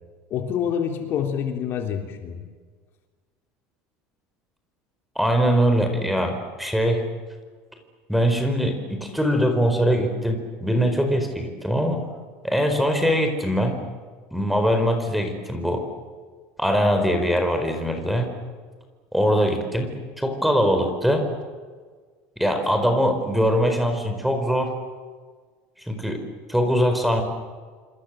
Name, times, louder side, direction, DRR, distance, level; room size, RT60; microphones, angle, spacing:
voice 1, 0.3-2.4, left 8 dB, 45° left, 4 dB, 3.4 m, -27 dB
voice 2, 5.1-7.0 8.1-12.1 12.4-13.8 14.3-15.8 16.6-18.3 19.1-19.9 20.2-21.3 22.4-24.7 25.8-26.2 26.5-27.2, equal, ahead, 6 dB, 4.6 m, -22 dB
27.0 x 26.0 x 7.7 m, 1.5 s
cardioid pair, 150°, 5 cm